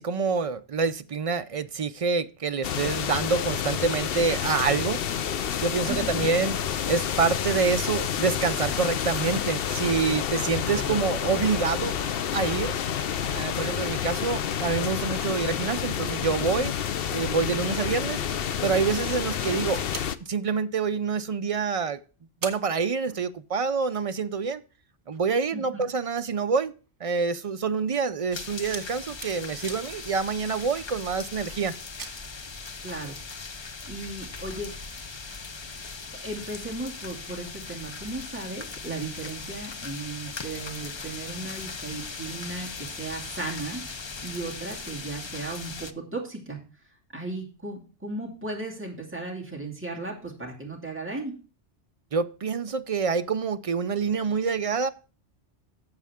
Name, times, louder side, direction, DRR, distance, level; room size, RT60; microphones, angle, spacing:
voice 1, 0.0-5.0 5.6-6.6 6.9-12.0 12.3-12.7 13.3-16.7 17.1-18.2 18.6-19.8 20.3-22.0 22.4-24.6 25.1-26.7 27.0-31.7 52.1-54.9, right 5 dB, 50° right, 0.4 m, -27 dB
sound 1, 2.6-20.2, left 9 dB, 60° left, 0.8 m, -29 dB
voice 2, 5.9-6.3 10.6-11.0 25.5-25.9 32.8-33.2 33.9-34.7 36.1-46.6 47.1-51.3, right 2 dB, 10° right, 2.4 m, -36 dB
sound 2, 19.7-21.1 21.7-21.8 22.0-22.1 22.4-23.6 23.9-24.0 24.6-31.4 31.8-32.1, right 4 dB, 85° right, 1.8 m, -44 dB
sound 3, 28.3-45.9, left 4 dB, 35° left, 0.5 m, -39 dB
12.5 x 7.5 x 3.6 m
omnidirectional pair, 1.2 m